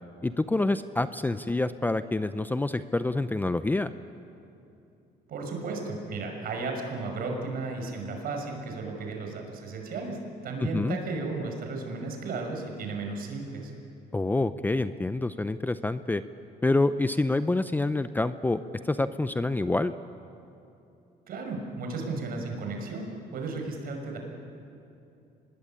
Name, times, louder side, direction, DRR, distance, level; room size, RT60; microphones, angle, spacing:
voice 1, 0.2-3.9 10.7-11.0 14.1-16.2 16.6-19.9, left 2 dB, 10° left, 12 dB, 0.6 m, -27 dB
voice 2, 5.3-13.7 21.3-24.2, right 3 dB, 60° right, 3 dB, 5.8 m, -34 dB
25.0 x 21.0 x 8.8 m, 2.8 s
cardioid pair, 110°, 17 cm